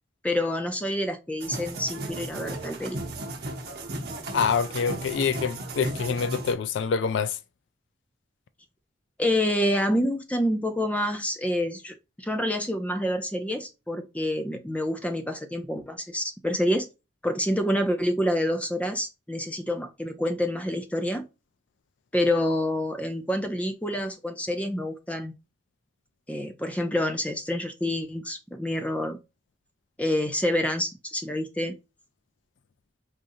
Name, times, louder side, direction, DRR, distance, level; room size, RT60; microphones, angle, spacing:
voice 1, 0.2-3.0 9.2-16.9 17.2-21.3 22.1-25.4 26.3-29.2 30.0-31.8, left 1 dB, 5° left, 0.5 m, -27 dB
sound 1, 1.4-6.5, right 2 dB, 50° right, 0.9 m, -35 dB
voice 2, 4.3-7.4, left 6 dB, 70° left, 0.4 m, -26 dB
4.9 x 2.7 x 2.6 m
head